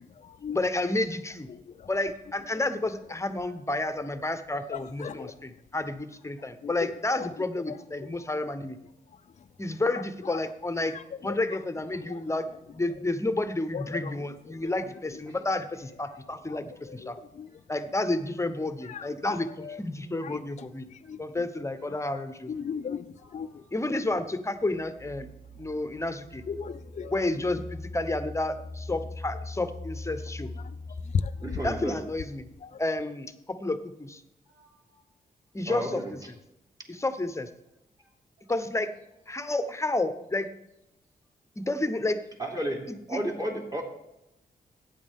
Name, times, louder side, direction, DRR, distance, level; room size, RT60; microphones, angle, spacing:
voice 1, 0.5-1.5 1.9-8.8 9.6-10.9 11.2-12.5 12.7-17.2 17.7-20.9 21.2-22.5 23.7-25.3 25.6-26.4 27.1-30.5 31.6-32.5 32.8-34.2 35.5-36.0 36.9-37.5 38.5-38.9 39.3-40.5 41.6-42.2 42.9-43.2, left 2 dB, 20° left, 1.0 m, -30 dB
voice 2, 4.7-5.3 13.7-13.8 21.1-21.2 22.5-23.0 23.3-23.5 26.5-27.1, left 7 dB, 50° left, 0.5 m, -35 dB
sound 1, 24.7-32.4, left 2 dB, 50° right, 3.7 m, -41 dB
voice 3, 31.4-32.0 34.6-34.7 35.7-36.1 42.4-43.8, right 1 dB, 25° right, 3.0 m, -32 dB
14.5 x 9.1 x 3.7 m
cardioid pair, 80°, 16 cm